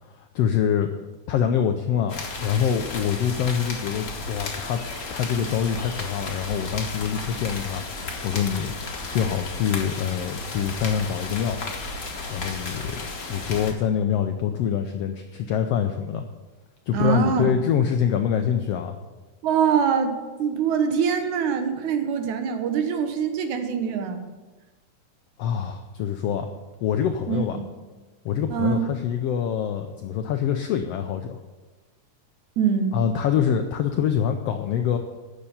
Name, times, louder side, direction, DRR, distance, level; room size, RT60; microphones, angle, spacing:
voice 1, 0.2-0.9 1.3-4.8 5.1-8.7 9.1-11.6 12.3-16.2 16.9-19.0 25.4-26.5 26.8-27.6 28.2-31.4 32.9-35.0, left 8 dB, 80° left, 6 dB, 1.4 m, -25 dB
sound 1, 2.1-13.7, left 3 dB, 40° left, 1.4 m, -34 dB
voice 2, 16.9-17.5 19.4-24.3 27.3-27.7 28.5-28.9 32.6-33.0, right 7 dB, 75° right, 7 dB, 2.4 m, -24 dB
9.9 x 6.7 x 8.6 m, 1.2 s
omnidirectional pair, 3.5 m